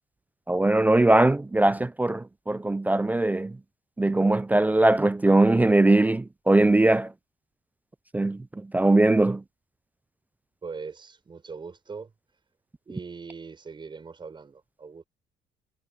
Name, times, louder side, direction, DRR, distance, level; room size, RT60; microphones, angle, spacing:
voice 1, 0.5-3.5 4.0-7.1 8.1-8.4 8.7-9.4, right 2 dB, 10° right, 0.3 m, -20 dB
voice 2, 10.6-12.1 12.9-15.0, right 5 dB, 30° right, 6.3 m, -41 dB
cardioid pair, 110°, 17 cm